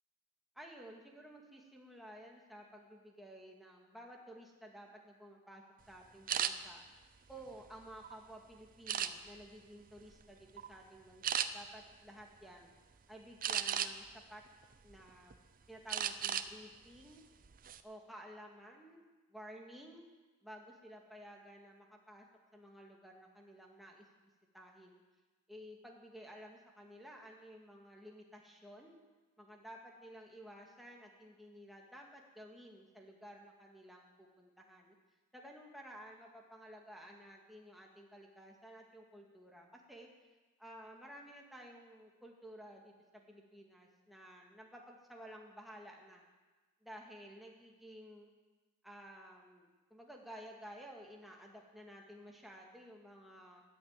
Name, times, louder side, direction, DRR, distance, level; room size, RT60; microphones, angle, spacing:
voice 1, 0.6-6.8 7.3-12.7 13.1-14.4 14.8-17.2 17.8-19.0 19.3-20.0 20.4-22.3 22.5-24.1 24.5-25.0 25.5-29.0 29.4-35.0 35.3-40.1 40.6-46.2 46.8-48.3 48.8-53.6, equal, ahead, -1 dB, 2.0 m, -54 dB
sound 1, 6.3-6.5 7.2-8.1 8.9-9.5 10.0-10.2 10.6-10.7 11.2-11.5 13.4-14.1 14.6-15.4 15.9-16.5 16.8-17.0 17.4-17.8, right 9 dB, 40° right, 0.6 m, -35 dB
14.0 x 10.0 x 9.0 m, 1.3 s
head